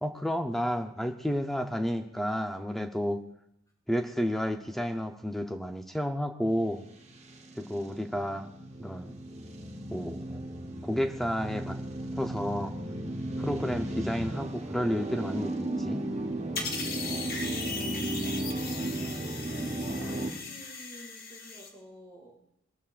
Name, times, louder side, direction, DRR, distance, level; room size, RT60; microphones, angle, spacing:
voice 1, 0.0-3.2 3.9-6.8 7.6-8.5 8.8-9.1 9.9-10.4 10.8-11.8 12.1-12.7 13.4-16.0, equal, ahead, 4 dB, 0.7 m, -31 dB
sound 1, 7.0-20.3, right 1 dB, 35° right, 1.2 m, -35 dB
sound 2, 16.6-21.7, left 4 dB, 45° left, 1.7 m, -38 dB
voice 2, 17.5-18.4 19.8-22.4, equal, 20° left, -6 dB, 5.9 m, -51 dB
22.0 x 13.0 x 2.5 m, 0.77 s
head